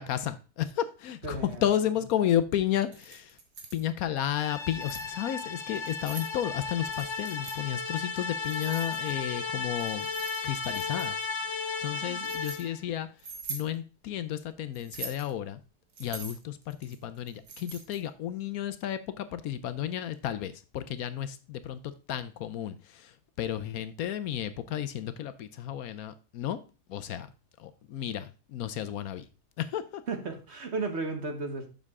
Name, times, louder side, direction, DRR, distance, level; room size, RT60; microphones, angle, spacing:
voice 1, 0.0-3.4 3.7-11.5 11.8-13.1 13.5-15.6 16.0-26.6 26.9-27.3 27.6-29.3 29.6-30.0, left 11 dB, 70° left, 13 dB, 1.0 m, -32 dB
voice 2, 1.2-1.6 12.0-12.2 30.1-31.7, right 3 dB, 45° right, 6 dB, 1.3 m, -34 dB
Keys jangling, 2.8-3.8 4.5-5.1 5.8-6.3 6.9-7.6 8.4-9.3 9.8-11.2 11.9-12.6 13.2-13.7 14.7-15.3 15.9-18.1, right 5 dB, 85° right, 2.0 m, -43 dB
sound 1, 4.4-12.8, left 4 dB, 30° left, 0.5 m, -35 dB
7.3 x 6.6 x 3.5 m, 0.32 s
omnidirectional pair, 1.7 m